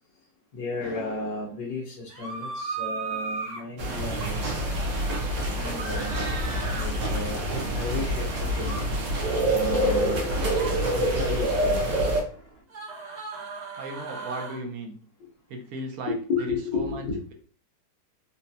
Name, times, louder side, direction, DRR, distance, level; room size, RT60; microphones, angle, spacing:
voice 1, 0.5-4.9 5.5-6.3 6.7-8.8 9.5-10.3 10.9-11.9 16.1-17.2, left 3 dB, 80° left, -5 dB, 1.6 m, -33 dB
sound 1, 2.1-3.6 5.8-6.9 8.6-8.8 10.4-10.7 12.7-14.6 16.4-16.5, right 4 dB, 45° right, 0.5 m, -35 dB
sound 2, 3.8-12.2, right 1 dB, 85° right, 1.6 m, -26 dB
Rocket Journey, 6.1-9.2 9.4-9.6 10.3-12.6, left 1 dB, 55° left, 0.9 m, -41 dB
voice 2, 13.8-15.0 15.5-17.0, right 1 dB, 65° right, 2 dB, 1.0 m, -36 dB
4.2 x 2.3 x 2.6 m, 0.43 s
omnidirectional pair, 1.9 m